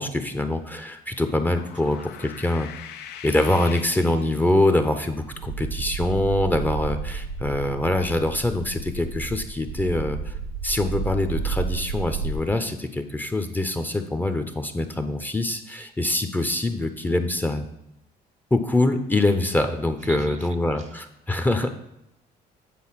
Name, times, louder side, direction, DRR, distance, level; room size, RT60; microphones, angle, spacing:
voice 1, 0.0-2.7 3.2-10.3 10.6-17.7 18.5-21.7, left 1 dB, 10° left, 7 dB, 0.6 m, -24 dB
sound 1, 1.1-4.9, left 10 dB, 80° left, 0.5 m, -42 dB
sound 2, 5.2-12.3, right 5 dB, 80° right, 1.1 m, -32 dB
voice 2, 20.1-21.0, right 7 dB, 45° right, 11 dB, 0.7 m, -41 dB
8.5 x 3.9 x 5.7 m, 0.85 s
cardioid pair, 110°, 17 cm